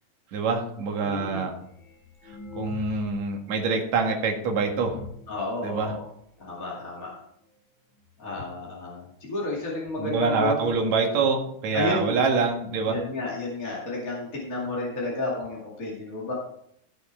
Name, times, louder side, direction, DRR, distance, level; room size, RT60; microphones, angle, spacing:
voice 1, 0.3-1.5 2.6-5.0 5.6-5.9 10.0-13.0, right 4 dB, 55° right, 1 dB, 2.7 m, -25 dB
voice 2, 1.0-1.5 5.3-6.1 6.4-7.1 8.2-10.7 11.7-12.2 12.9-16.3, left 2 dB, 30° left, -5 dB, 2.1 m, -31 dB
sound 1, 1.6-3.3 3.6-3.7 4.2-4.3 4.6-5.3 6.1-6.2 6.4-6.5 6.8-7.1 7.9-8.0 8.3-8.4 9.0-9.1 9.4-9.5, left 2 dB, 55° left, 3.7 m, -42 dB
16.0 x 6.4 x 4.4 m, 0.72 s
omnidirectional pair, 4.2 m